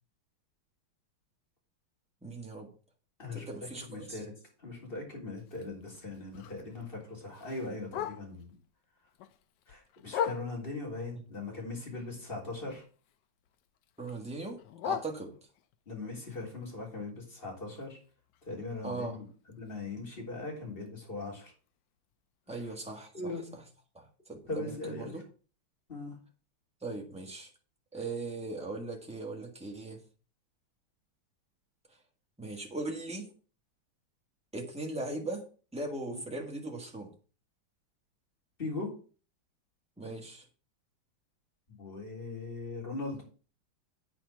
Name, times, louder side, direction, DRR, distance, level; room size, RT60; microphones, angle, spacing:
voice 1, 2.2-2.7 3.3-4.2 11.5-11.6 14.0-15.3 18.8-19.2 22.5-23.1 23.9-25.2 26.8-27.5 27.9-30.0 32.4-33.3 34.5-35.4 35.7-37.1 40.0-40.4, right 2 dB, 5° right, 1.5 m, -39 dB
voice 2, 3.2-4.3 4.6-8.6 9.7-12.8 15.9-18.0 18.4-19.3 19.6-21.5 23.1-23.5 24.5-25.2 25.9-26.2 36.1-36.2 38.6-38.9 41.7-43.2, left 3 dB, 25° left, 3.7 m, -40 dB
Bark, 5.4-8.6 9.0-10.9 11.3-13.2 13.4-15.8 16.2-20.1 20.5-20.6 20.9-21.2 21.7-21.8 22.1-22.2 22.7-22.8, left 10 dB, 70° left, 1.1 m, -42 dB
9.0 x 4.3 x 6.9 m
omnidirectional pair, 2.2 m